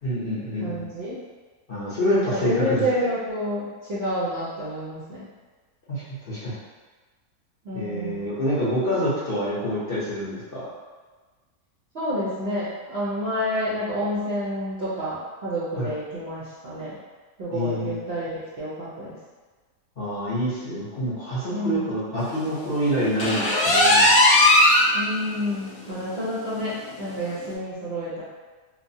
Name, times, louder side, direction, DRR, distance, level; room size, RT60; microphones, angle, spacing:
voice 1, 0.0-0.9 1.7-2.8 5.9-6.5 7.7-10.7 15.8-15.9 17.5-18.0 20.0-24.1, equal, 50° left, -11 dB, 0.7 m, -26 dB
voice 2, 0.6-1.2 2.3-5.2 7.6-8.2 11.9-17.0 17.4-19.1 21.5-21.9 24.9-28.2, equal, 60° right, -10 dB, 0.7 m, -29 dB
sound 1, 23.2-24.9 25.3-25.4 25.9-26.0 26.4-26.5 27.4-27.5, left 1 dB, 75° left, 1.0 m, -17 dB
3.0 x 2.0 x 2.6 m, 1.3 s
omnidirectional pair, 1.6 m